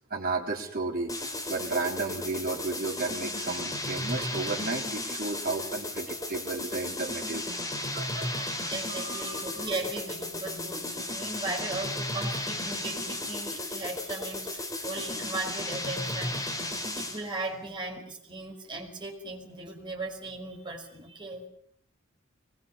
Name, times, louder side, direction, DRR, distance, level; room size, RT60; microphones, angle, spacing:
voice 1, 0.1-1.1 1.5-9.4, right 3 dB, 45° right, 2 dB, 4.1 m, -33 dB
sound 1, 1.1-17.3, left 1 dB, 15° left, 4.5 m, -34 dB
voice 2, 8.7-16.4 16.9-21.4, right 2 dB, 20° right, 1 dB, 5.9 m, -37 dB
24.5 x 21.5 x 7.2 m, 0.67 s
head